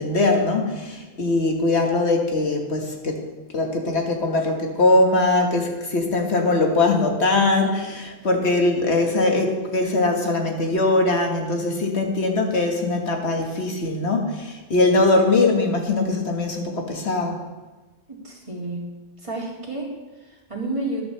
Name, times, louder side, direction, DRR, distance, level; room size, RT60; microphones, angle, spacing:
voice 1, 0.0-3.3 3.5-17.5, left 2 dB, 70° left, 2 dB, 1.8 m, -21 dB
voice 2, 18.1-18.9 19.2-21.0, right 2 dB, 25° right, -2 dB, 2.1 m, -31 dB
13.5 x 11.0 x 3.3 m, 1.2 s
omnidirectional pair, 1.2 m